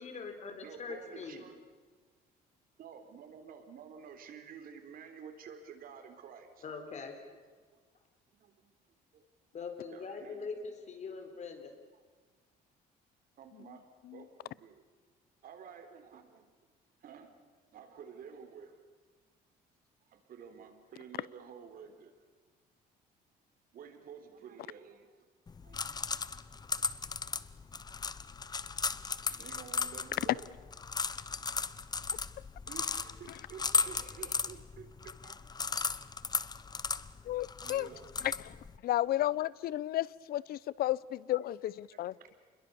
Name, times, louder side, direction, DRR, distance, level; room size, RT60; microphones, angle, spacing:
voice 1, 0.0-1.4 6.6-7.2 9.5-11.7, left 4 dB, 45° left, 4.7 m, -42 dB
voice 2, 0.6-1.5 2.8-6.7 7.7-7.8 8.4-8.7 9.1-9.3 9.9-10.5 13.4-13.8 14.1-14.8 15.4-16.5 17.0-17.3 17.7-18.8 20.1-22.1 23.7-25.2 25.6-25.8 29.2-30.5 32.1-32.3 32.7-35.4 35.6-35.9 36.8-36.9 37.6-38.1 41.9-42.4, right 7 dB, 60° right, 3.9 m, -51 dB
sound 1, 25.5-38.8, left 5 dB, 25° left, 0.9 m, -36 dB
voice 3, 37.2-37.9 38.2-38.5 38.8-42.1, left 14 dB, 65° left, 0.7 m, -33 dB
29.0 x 22.0 x 7.0 m
cardioid pair, 110°, 17 cm